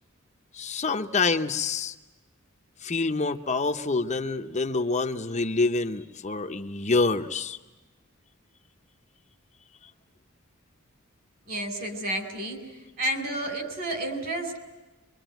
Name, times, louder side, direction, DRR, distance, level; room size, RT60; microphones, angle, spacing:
voice 1, 0.5-1.9 2.8-7.6, left 3 dB, 35° left, 6 dB, 0.8 m, -27 dB
voice 2, 11.5-12.6 13.0-14.6, right 1 dB, 50° right, 7 dB, 4.1 m, -31 dB
25.0 x 24.0 x 9.2 m, 1.2 s
head